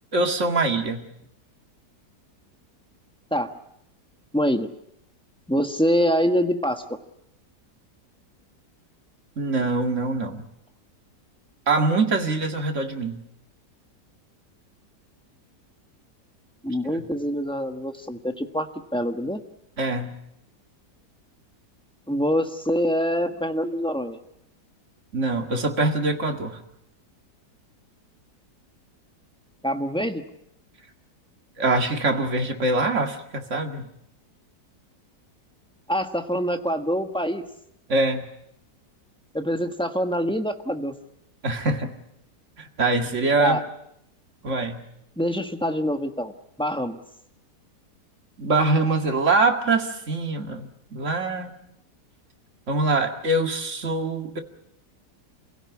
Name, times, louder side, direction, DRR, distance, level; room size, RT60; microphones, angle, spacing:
voice 1, 0.1-1.1 9.4-10.4 11.7-13.2 16.9-17.0 19.8-20.1 25.1-26.6 31.6-33.9 37.9-38.2 41.4-41.9 42.6-43.6 44.4-44.9 48.4-51.5 52.7-54.4, right 2 dB, 45° right, 4 dB, 2.3 m, -24 dB
voice 2, 4.3-4.7 5.5-6.8 16.6-19.4 22.1-24.2 29.6-30.2 35.9-37.4 39.3-40.9 43.4-43.6 45.2-46.3 46.6-47.0, equal, 5° left, 6 dB, 1.2 m, -25 dB
28.0 x 16.5 x 8.4 m, 0.79 s
omnidirectional pair, 1.8 m